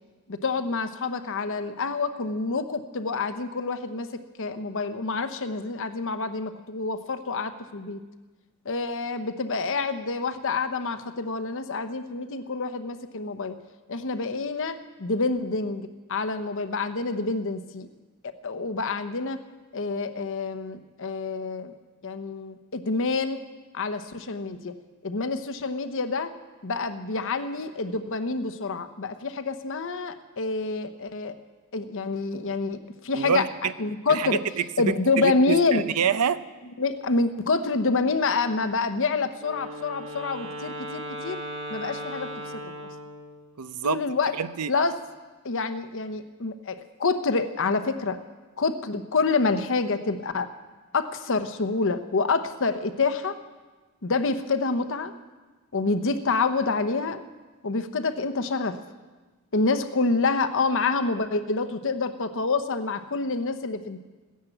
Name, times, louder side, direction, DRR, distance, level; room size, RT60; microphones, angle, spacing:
voice 1, 0.3-8.0 8.6-13.6 13.9-17.9 18.4-19.4 19.7-21.7 22.0-23.4 23.7-24.7 25.0-26.3 26.6-31.3 31.7-32.8 33.0-33.4 33.8-34.4 34.8-35.9 36.8-41.4 41.7-42.3 42.8-42.9 43.8-44.3 44.7-45.0 45.4-48.2 48.6-50.5 50.9-53.4 54.0-55.1 55.7-57.2 57.6-58.8 59.5-64.0, left 3 dB, 60° left, 10 dB, 0.9 m, -27 dB
voice 2, 33.1-33.7 34.1-34.9 35.2-36.4 43.6-44.0 44.3-44.7, right 7 dB, 90° right, 14 dB, 0.6 m, -27 dB
Wind instrument woodwind instrument, 39.4-43.5, equal, 55° right, 2.3 m, -37 dB
16.0 x 10.5 x 7.8 m, 1.3 s
head